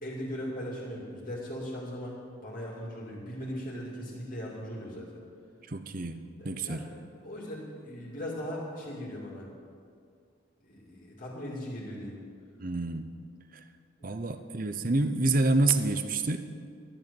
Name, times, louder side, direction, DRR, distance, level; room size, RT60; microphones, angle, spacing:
voice 1, 0.0-5.2 6.4-6.9 7.2-9.5 10.6-12.2 14.0-14.2, equal, 40° left, -4 dB, 2.6 m, -39 dB
voice 2, 5.7-6.9 12.6-13.1 13.5-13.6 14.0-16.4, right 2 dB, 40° right, 9 dB, 0.7 m, -28 dB
12.0 x 10.5 x 7.1 m, 2.3 s
head